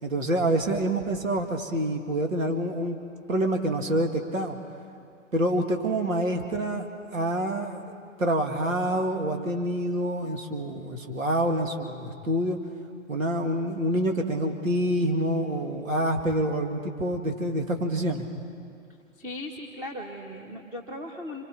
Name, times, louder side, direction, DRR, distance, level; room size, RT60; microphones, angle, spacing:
voice 1, 0.0-3.0 3.3-4.6 5.3-6.9 7.1-7.8 8.2-12.6 13.1-18.3, right 1 dB, 75° right, 3 dB, 2.5 m, -27 dB
voice 2, 19.2-21.5, left 1 dB, 10° right, 1 dB, 1.2 m, -38 dB
27.5 x 26.0 x 4.6 m, 2.4 s
figure-of-eight pair, 125°, 40 cm